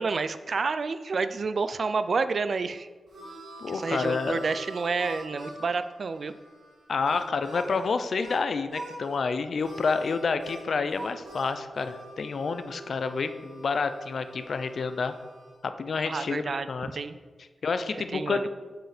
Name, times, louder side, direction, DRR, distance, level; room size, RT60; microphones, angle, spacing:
voice 1, 0.0-2.9 3.7-6.3 16.1-16.7 16.9-17.2 18.1-18.5, right 4 dB, 45° right, 12 dB, 0.3 m, -29 dB
Harmonica, 2.6-8.4 8.7-9.2 9.6-15.6, right 1 dB, 85° right, 2.3 m, -44 dB
voice 2, 3.6-4.4 6.9-15.1 15.6-16.9 17.6-18.5, left 4 dB, 50° left, 10 dB, 0.4 m, -29 dB
7.6 x 4.7 x 4.9 m, 1.4 s
wide cardioid pair, 170°, 0 cm